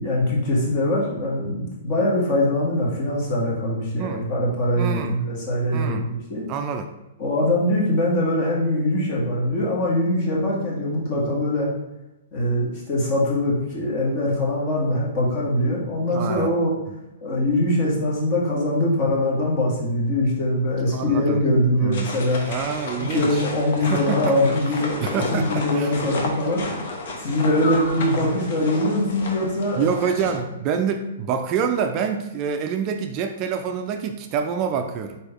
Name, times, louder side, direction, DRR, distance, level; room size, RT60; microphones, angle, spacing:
voice 1, 0.0-6.4 7.2-11.7 12.3-16.7 17.2-22.4 22.9-26.6 27.2-29.9, left 1 dB, 40° left, -3 dB, 1.6 m, -22 dB
voice 2, 4.0-4.3 4.8-5.2 5.7-6.1 6.5-6.9 16.1-16.5 20.9-21.4 21.7-22.1 22.4-23.4 23.9-24.4 25.0-25.9 29.8-35.2, right 6 dB, 35° right, 6 dB, 0.3 m, -26 dB
sound 1, 21.9-30.4, left 2 dB, 60° left, 0.9 m, -32 dB
4.3 x 3.3 x 3.5 m, 0.96 s
hypercardioid pair, 140°, 0 cm